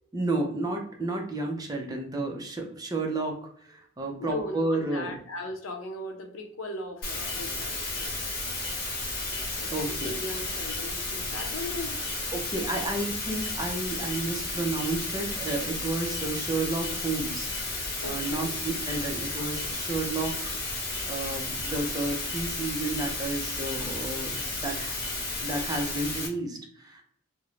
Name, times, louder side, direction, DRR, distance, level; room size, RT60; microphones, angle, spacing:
voice 1, 0.1-5.2 9.7-9.9 12.3-25.0 25.4-27.0, right 2 dB, 20° right, 1 dB, 0.4 m, -32 dB
voice 2, 4.2-8.4 9.6-12.0 12.7-12.8 18.0-18.4, left 1 dB, 80° left, 4 dB, 0.6 m, -38 dB
sound 1, 7.0-26.3, left 2 dB, 50° left, 0.9 m, -33 dB
2.4 x 2.0 x 3.0 m, 0.63 s
head